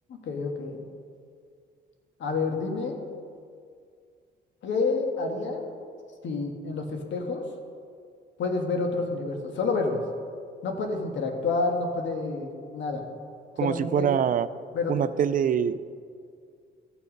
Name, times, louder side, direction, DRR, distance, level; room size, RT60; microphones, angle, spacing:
voice 1, 0.1-0.8 2.2-3.0 4.6-5.7 6.2-7.4 8.4-10.0 10.6-13.0 13.6-14.2 14.7-15.1, left 3 dB, 70° left, 3 dB, 1.6 m, -29 dB
voice 2, 13.6-14.5 14.9-15.8, right 8 dB, 45° right, 14 dB, 0.4 m, -24 dB
14.0 x 6.2 x 5.2 m, 2.2 s
cardioid pair, 90°, 20 cm